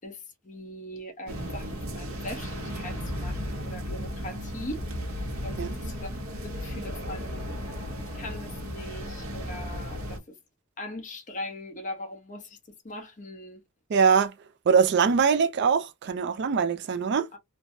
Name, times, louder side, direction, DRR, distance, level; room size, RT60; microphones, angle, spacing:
voice 1, 0.0-4.8 5.4-6.1 6.4-7.7 8.1-10.2 10.8-12.6 12.8-13.6 17.3-17.4, left 1 dB, 35° left, 0.9 m, -40 dB
sound 1, 1.3-10.2, equal, 65° right, 1.0 m, -35 dB
voice 2, 13.9-14.3 14.7-17.3, right 6 dB, 50° right, 0.4 m, -22 dB
3.2 x 2.1 x 2.6 m
head